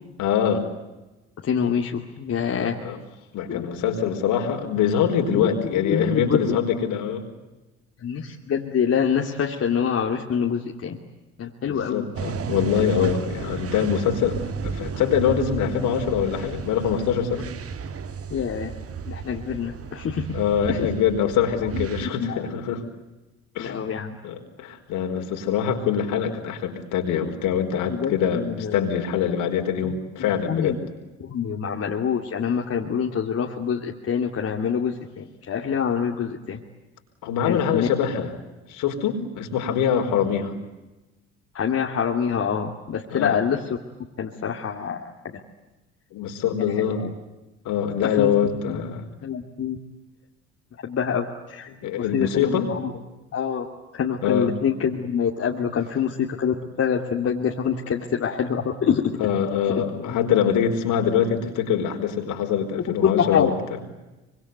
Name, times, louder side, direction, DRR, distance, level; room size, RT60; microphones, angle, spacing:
voice 1, 0.2-0.7 2.5-3.0 3.3-7.2 11.7-17.5 20.3-22.8 23.5-23.8 24.2-30.8 37.2-38.3 38.7-40.6 43.1-43.4 46.1-47.1 47.6-49.0 51.7-52.7 54.2-54.5 59.2-63.9, left 8 dB, 65° left, 4 dB, 4.7 m, -24 dB
voice 2, 1.4-2.8 3.5-3.7 5.3-6.6 8.0-11.0 11.4-12.1 12.9-13.1 18.3-18.7 19.1-20.3 20.7-20.9 21.7-22.5 23.6-24.1 27.7-28.8 29.8-29.9 30.2-30.9 31.2-36.6 37.4-37.9 41.5-43.6 44.2-45.0 47.0-47.1 48.2-48.3 48.7-48.8 49.2-49.8 50.8-51.7 52.0-52.9 53.3-53.7 53.9-59.2 59.7-60.3 63.0-63.5, left 7 dB, 45° left, 1 dB, 2.7 m, -26 dB
sound 1, 12.1-22.1, right 6 dB, 45° right, 1.8 m, -33 dB
25.0 x 25.0 x 9.5 m, 1.1 s
hypercardioid pair, 55°, 33 cm